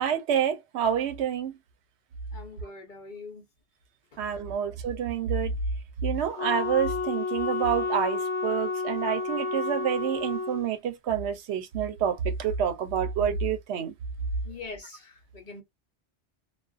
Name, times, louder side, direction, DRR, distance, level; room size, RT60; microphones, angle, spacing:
voice 1, 0.0-1.5 4.2-5.5 6.0-13.9, right 8 dB, 75° right, 0.8 m, -28 dB
voice 2, 2.3-3.5 4.1-4.2 14.4-15.6, left 4 dB, 50° left, 0.8 m, -43 dB
Wind instrument woodwind instrument, 6.4-10.7, left 4 dB, 75° left, 0.9 m, -30 dB
2.4 x 2.3 x 2.3 m
omnidirectional pair, 1.1 m